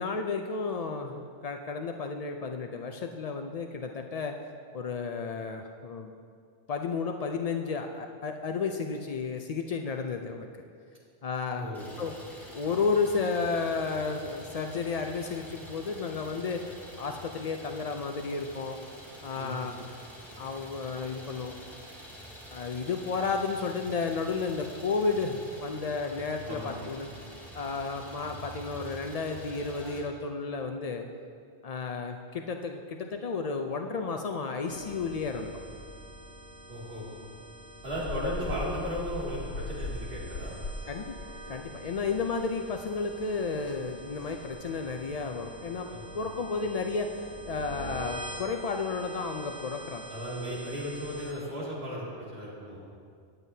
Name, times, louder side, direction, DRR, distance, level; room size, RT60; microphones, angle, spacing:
voice 1, 0.0-4.4 4.7-6.1 6.7-10.5 11.2-11.7 12.0-12.1 12.5-18.8 19.2-19.9 20.4-21.5 22.5-27.1 27.5-31.1 31.6-35.5 40.9-41.2 41.5-50.0, left 4 dB, 70° left, 4 dB, 0.3 m, -32 dB
voice 2, 11.6-11.9 19.4-19.7 26.4-26.8 36.7-37.1 37.8-40.6 45.9-46.2 50.1-52.8, equal, 45° right, -7 dB, 2.7 m, -36 dB
Idling, 11.7-30.0, equal, ahead, 2.4 m, -47 dB
sound 1, 34.7-51.3, right 1 dB, 65° right, 1.6 m, -45 dB
sound 2, 37.8-42.4 42.7-42.8 43.2-43.3 43.7-43.8 44.3-44.5, left 3 dB, 50° left, 0.7 m, -38 dB
18.0 x 9.1 x 2.8 m, 2.2 s
omnidirectional pair, 1.3 m